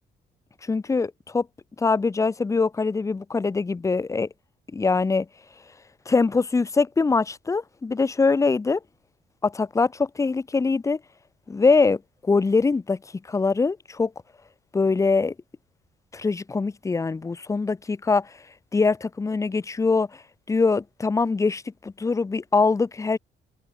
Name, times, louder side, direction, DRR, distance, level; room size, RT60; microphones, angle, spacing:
voice 1, 0.6-1.5 1.8-4.3 4.7-5.3 6.1-8.8 9.4-11.0 11.5-13.0 13.3-14.1 14.7-15.3 16.1-18.3 18.7-20.2 20.5-23.2, left 4 dB, 15° left, 0.4 m, -23 dB
open air
cardioid pair, 90°, 20 cm